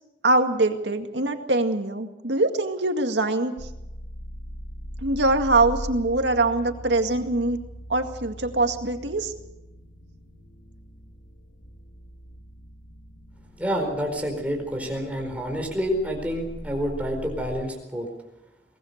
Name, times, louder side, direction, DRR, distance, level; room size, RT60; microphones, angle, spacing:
voice 1, 0.2-3.5 5.0-7.6 7.9-9.3, right 2 dB, 85° right, 6 dB, 2.1 m, -23 dB
sound 1, 3.6-17.6, equal, 50° left, 1.9 m, -41 dB
voice 2, 13.6-18.1, equal, 10° right, 2 dB, 4.6 m, -28 dB
23.5 x 19.5 x 6.6 m, 0.97 s
head